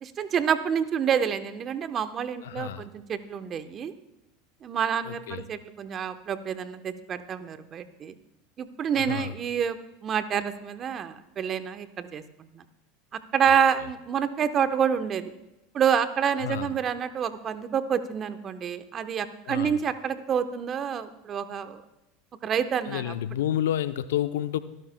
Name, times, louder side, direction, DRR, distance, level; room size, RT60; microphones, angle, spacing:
voice 1, 0.0-3.9 4.6-8.2 8.6-12.2 12.5-12.6 13.3-15.3 15.7-21.8 22.4-23.1, right 8 dB, 40° right, 10 dB, 1.0 m, -28 dB
voice 2, 2.4-2.9 5.0-5.4 8.9-9.3 13.5-13.9 16.4-16.7 19.5-19.8 22.9-24.6, left 11 dB, 75° left, 13 dB, 0.6 m, -30 dB
24.0 x 12.0 x 2.3 m, 0.95 s
hypercardioid pair, 85°, 0 cm